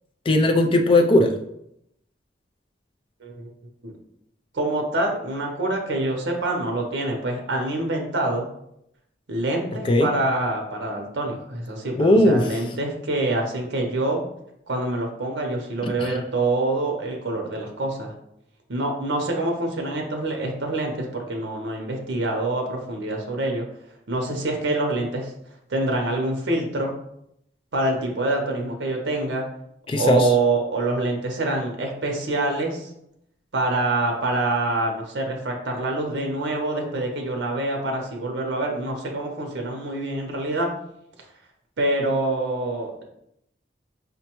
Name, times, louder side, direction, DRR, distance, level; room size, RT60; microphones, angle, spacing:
voice 1, 0.3-1.3 9.9-10.1 12.0-12.4 16.0-16.1 29.9-30.2, left 1 dB, 30° left, 5 dB, 0.3 m, -17 dB
voice 2, 4.5-8.5 9.3-14.2 14.7-18.1 18.7-23.6 24.1-25.3 25.7-26.9 27.7-29.4 29.9-32.9 33.5-40.7 41.8-43.0, right 2 dB, 80° right, 2 dB, 0.6 m, -26 dB
5.1 x 2.2 x 2.9 m, 0.77 s
head